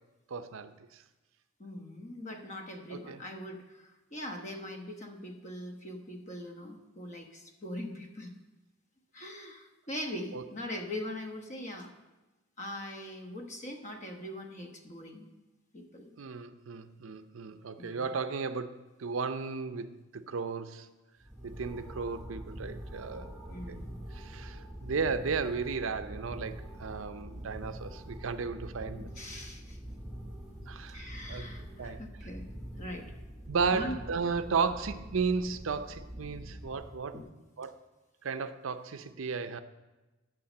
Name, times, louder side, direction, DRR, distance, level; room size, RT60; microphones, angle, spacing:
voice 1, 0.3-1.0 2.9-3.2 10.3-10.4 16.2-20.9 21.4-23.3 23.7-23.8 24.1-29.1 30.7-31.5 31.8-32.0 33.5-37.2 37.6-37.7 38.2-39.6, right 5 dB, 75° right, 10 dB, 0.6 m, -34 dB
voice 2, 1.6-8.3 9.1-11.9 12.6-15.3 15.7-16.1 17.8-18.1 23.5-23.9 29.2-29.8 30.9-32.5 32.8-33.1 33.7-34.0 34.6-34.7 37.1-37.3, left 1 dB, 35° left, 4 dB, 1.1 m, -41 dB
sound 1, 21.2-37.2, equal, ahead, 1.4 m, -44 dB
8.6 x 6.2 x 7.6 m, 1.1 s
head